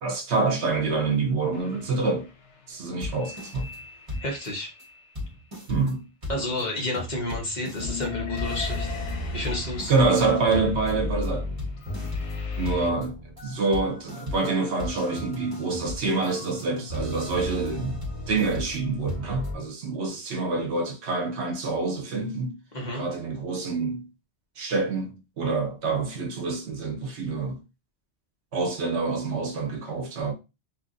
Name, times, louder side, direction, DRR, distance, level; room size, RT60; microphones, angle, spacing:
voice 1, 0.0-2.3 2.7-3.7 5.7-6.1 9.9-11.5 12.6-18.0 18.3-22.6 22.9-24.1 24.6-27.6 28.5-30.3, right 3 dB, 70° right, 1.0 m, -26 dB
sound 1, 1.5-5.1 7.8-12.9, left 5 dB, 90° left, 1.0 m, -39 dB
sound 2, 3.0-3.8 4.1-4.5 4.8-4.9 5.1-19.5, left 1 dB, 30° right, 1.2 m, -35 dB
voice 2, 4.2-4.7 6.3-9.0 9.3-9.9 22.7-23.0, left 1 dB, 40° left, 1.0 m, -30 dB
3.0 x 2.5 x 2.5 m
omnidirectional pair, 1.2 m